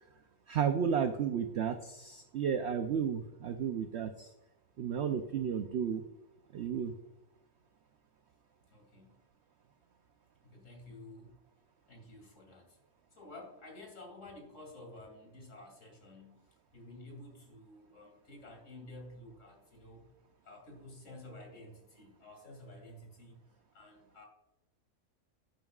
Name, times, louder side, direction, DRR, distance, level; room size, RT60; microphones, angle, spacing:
voice 1, 0.5-4.3 4.8-6.0 6.5-6.9, right 7 dB, 60° right, 7 dB, 0.8 m, -33 dB
voice 2, 8.7-9.2 10.4-11.4 11.9-12.8 13.1-20.1 20.4-23.4 23.7-24.3, left 1 dB, 55° left, 1 dB, 2.8 m, -52 dB
11.5 x 11.0 x 2.4 m, 0.96 s
omnidirectional pair, 1.5 m